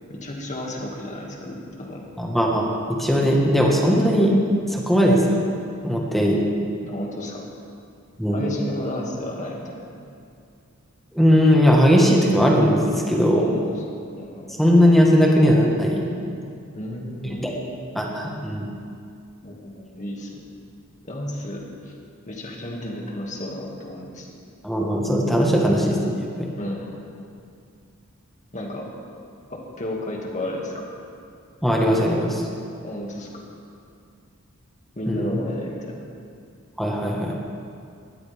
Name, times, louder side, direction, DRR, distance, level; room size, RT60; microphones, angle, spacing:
voice 1, 0.1-2.1 6.9-7.5 8.3-10.0 13.3-13.6 14.2-14.6 16.7-17.8 19.4-20.5 21.0-21.6 22.3-24.3 26.6-27.1 28.5-28.9 29.5-30.9 32.8-33.3 35.0-36.1, left 1 dB, 35° left, -1 dB, 2.2 m, -32 dB
voice 2, 2.2-2.6 3.0-4.3 4.7-5.5 5.8-6.4 8.2-8.4 11.1-13.5 14.6-16.1 17.3-17.5 17.9-18.7 24.6-26.0 26.4-26.5 31.6-32.4 35.1-35.3 36.8-37.4, equal, ahead, -2 dB, 1.5 m, -18 dB
19.5 x 13.0 x 3.6 m, 2.4 s
head